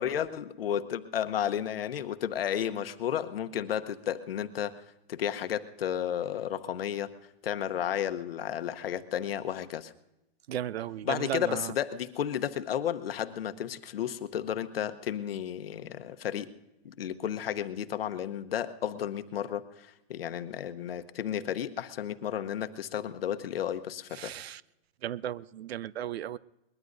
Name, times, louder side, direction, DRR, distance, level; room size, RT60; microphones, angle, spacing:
voice 1, 0.0-4.8 5.1-7.1 7.4-9.9 11.0-16.5 16.8-24.3, left 10 dB, 70° left, 1.0 m, -33 dB
voice 2, 10.5-11.7 24.1-24.6 25.0-26.4, right 11 dB, 80° right, 0.5 m, -35 dB
22.5 x 21.0 x 2.6 m
hypercardioid pair, 170°, 31 cm